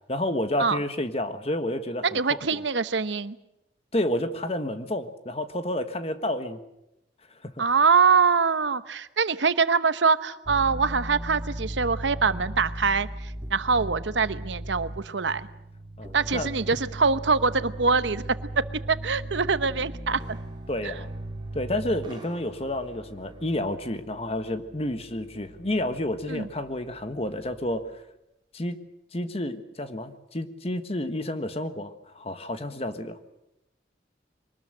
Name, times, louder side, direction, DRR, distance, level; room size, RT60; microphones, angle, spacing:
voice 1, 0.1-2.2 2.5-2.6 3.9-6.6 7.3-7.6 16.0-16.5 20.7-21.1 21.5-28.0 28.5-28.8 29.1-33.2, left 1 dB, 35° left, 9 dB, 1.4 m, -30 dB
voice 2, 2.0-3.4 7.6-15.4 16.1-18.2 18.6-20.4 20.8-20.9 26.3-26.5, right 5 dB, 85° right, 14 dB, 0.9 m, -24 dB
sound 1, 10.5-27.9, right 1 dB, 25° right, 2.5 m, -38 dB
23.5 x 19.5 x 7.8 m, 0.86 s
head